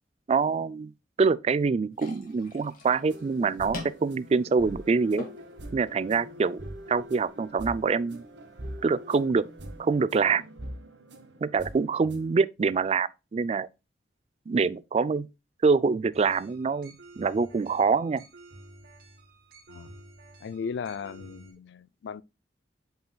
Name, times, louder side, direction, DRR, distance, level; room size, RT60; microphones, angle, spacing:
voice 1, 0.3-0.9 1.2-5.3 5.7-6.6 6.9-8.2 8.8-9.5 9.8-10.4 11.4-13.7 14.5-15.3 15.6-18.2, right 4 dB, 35° right, 0.3 m, -25 dB
sound 1, 1.9-9.9, left 2 dB, 50° left, 1.9 m, -46 dB
sound 2, 3.1-12.4, right 1 dB, 85° right, 1.1 m, -43 dB
sound 3, 16.1-21.5, right 2 dB, 55° right, 1.3 m, -51 dB
voice 2, 20.4-22.2, left 6 dB, 80° left, 0.4 m, -37 dB
7.9 x 5.5 x 2.2 m
head